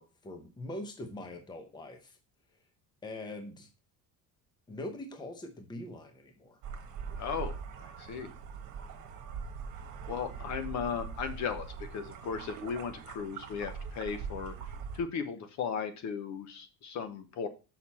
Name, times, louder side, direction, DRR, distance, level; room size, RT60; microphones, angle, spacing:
voice 1, 0.0-2.2 3.0-3.7 4.7-6.6, left 1 dB, 10° left, 5 dB, 0.8 m, -43 dB
sound 1, 6.6-15.0, right 6 dB, 50° right, 1.4 m, -42 dB
voice 2, 7.2-8.3 10.1-14.5 14.9-17.5, left 6 dB, 50° left, 9 dB, 0.9 m, -36 dB
6.6 x 5.8 x 4.2 m, 0.32 s
cardioid pair, 180°, 37 cm